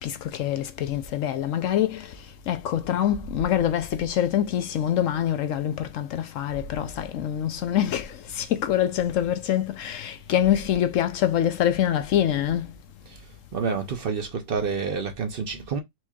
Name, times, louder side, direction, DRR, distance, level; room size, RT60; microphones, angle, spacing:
voice 1, 0.0-2.1 2.5-12.7, left 10 dB, 65° left, 0.8 m, -25 dB
voice 2, 13.5-15.8, right 5 dB, 55° right, 0.6 m, -28 dB
4.4 x 2.9 x 2.3 m
omnidirectional pair, 1.7 m